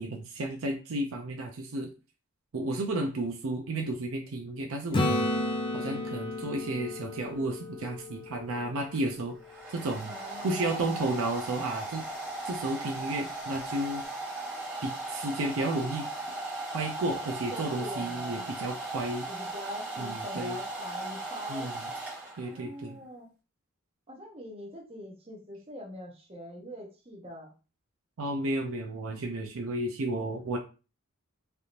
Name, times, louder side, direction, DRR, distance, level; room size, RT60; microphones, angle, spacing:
voice 1, 0.0-1.9 2.5-5.3 5.7-9.3 9.7-10.1 10.4-12.0 12.4-14.1 14.8-16.1 16.7-19.3 20.0-20.6 21.5-21.9 22.4-23.0 28.2-30.6, right 2 dB, 65° right, 3 dB, 0.5 m, -32 dB
Acoustic guitar / Strum, 4.9-8.7 13.5-13.6, left 1 dB, 20° left, 0.4 m, -32 dB
Domestic sounds home sounds, 8.9-22.7, right 2 dB, 5° right, 1.1 m, -37 dB
voice 2, 10.0-11.2 17.5-18.5 19.3-21.7 22.4-23.3 24.1-27.5, equal, 25° right, 0 dB, 0.8 m, -43 dB
3.3 x 2.8 x 2.4 m, 0.33 s
head